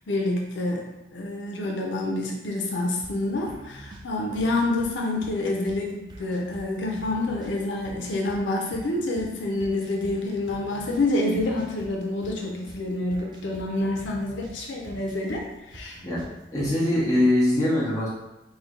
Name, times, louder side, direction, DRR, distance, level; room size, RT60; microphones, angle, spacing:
voice 1, 0.1-16.0, left 2 dB, 90° left, -1 dB, 0.6 m, -28 dB
sound 1, 3.0-17.0, right 1 dB, 25° right, 0.3 m, -46 dB
voice 2, 16.5-18.1, left 1 dB, 20° left, -9 dB, 1.0 m, -22 dB
3.2 x 2.2 x 3.8 m, 0.98 s
head